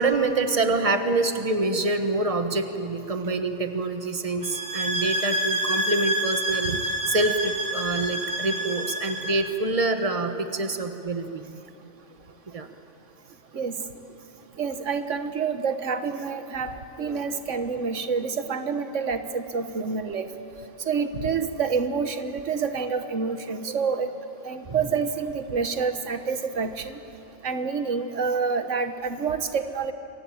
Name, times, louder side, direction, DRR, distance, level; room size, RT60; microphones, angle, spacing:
voice 1, 0.0-11.6 12.5-12.7 17.1-17.2 23.7-23.8 24.6-24.8, right 2 dB, 30° right, 7 dB, 1.5 m, -26 dB
sound 1, 4.4-9.5, right 1 dB, 65° right, 2.6 m, -28 dB
voice 2, 14.6-20.3 20.9-24.1 24.4-27.0 27.4-29.9, right 5 dB, 90° right, 9 dB, 1.6 m, -28 dB
28.0 x 24.0 x 8.7 m, 2.9 s
omnidirectional pair, 1.2 m